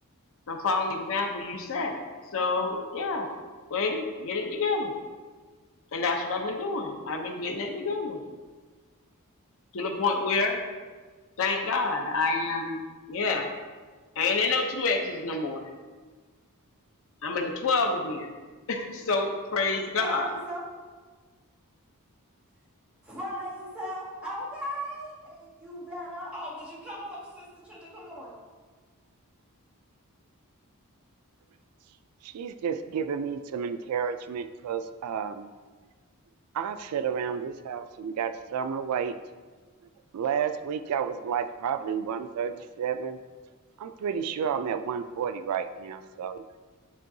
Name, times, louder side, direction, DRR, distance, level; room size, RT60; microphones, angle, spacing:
voice 1, 0.5-2.0 2.3-3.3 3.7-4.9 5.9-8.2 9.7-10.6 11.4-12.8 13.1-13.5 14.2-15.6 17.2-18.3 18.7-20.3, left 3 dB, 65° left, 3 dB, 0.7 m, -28 dB
voice 2, 20.0-20.7 23.0-28.4, equal, 5° right, -8 dB, 1.7 m, -38 dB
voice 3, 32.2-35.5 36.5-39.1 40.1-43.2 43.8-46.4, right 7 dB, 85° right, 11 dB, 0.3 m, -31 dB
9.4 x 3.8 x 2.7 m, 1.4 s
head